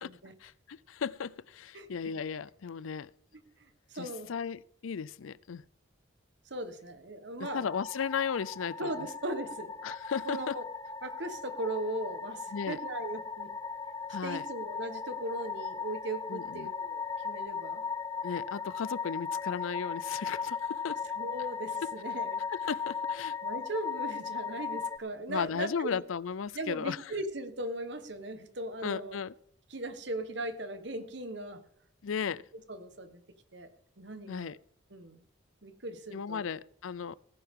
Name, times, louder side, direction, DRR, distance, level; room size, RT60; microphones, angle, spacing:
voice 1, 0.4-3.1 3.9-5.6 7.4-9.1 9.8-10.6 12.5-12.8 14.1-14.5 16.3-16.7 18.2-21.0 22.6-23.4 25.3-27.0 28.8-29.3 32.0-32.4 34.3-34.6 36.1-37.2, left 6 dB, 85° left, 0.5 m, -35 dB
voice 2, 3.6-4.3 6.4-7.7 8.8-9.7 10.2-10.6 11.0-13.5 14.2-17.8 21.2-22.4 23.4-26.0 26.5-29.2 29.7-31.6 32.7-33.2 33.5-33.7 34.0-34.5 34.9-35.2 35.6-36.5, right 1 dB, 60° right, 1.3 m, -38 dB
sound 1, 7.4-25.0, left 5 dB, 15° left, 0.5 m, -37 dB
17.5 x 10.5 x 3.7 m
head